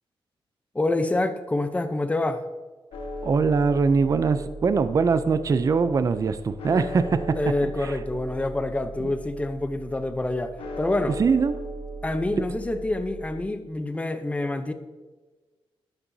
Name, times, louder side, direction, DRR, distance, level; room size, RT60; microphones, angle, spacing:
voice 1, 0.7-2.5 7.3-11.2 12.0-14.7, left 2 dB, 15° left, 9 dB, 0.7 m, -27 dB
sound 1, 2.9-13.5, right 1 dB, 85° left, 1.4 m, -37 dB
voice 2, 3.2-7.4 7.6-8.0 11.2-11.5, right 5 dB, 35° right, 11 dB, 0.5 m, -22 dB
12.5 x 10.0 x 2.7 m, 1.3 s
wide cardioid pair, 140°, 9 cm